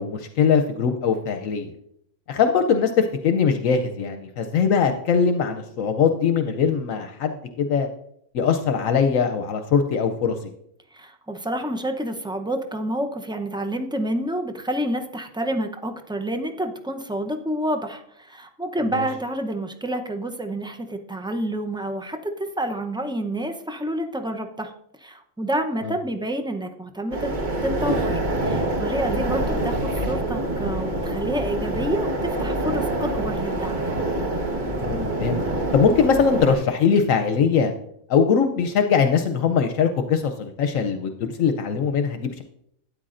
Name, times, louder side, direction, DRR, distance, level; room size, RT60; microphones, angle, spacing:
voice 1, 0.0-1.7 2.3-7.9 8.3-10.5 18.9-19.1 34.8-35.4 35.7-37.7 38.1-42.4, left 6 dB, 75° left, 7 dB, 1.0 m, -21 dB
voice 2, 10.9-24.7 25.0-27.3 27.6-33.8, right 1 dB, 5° right, 5 dB, 0.3 m, -28 dB
sound 1, 27.1-36.6, right 1 dB, 35° right, 1.3 m, -26 dB
12.5 x 9.7 x 2.5 m, 0.72 s
omnidirectional pair, 1.5 m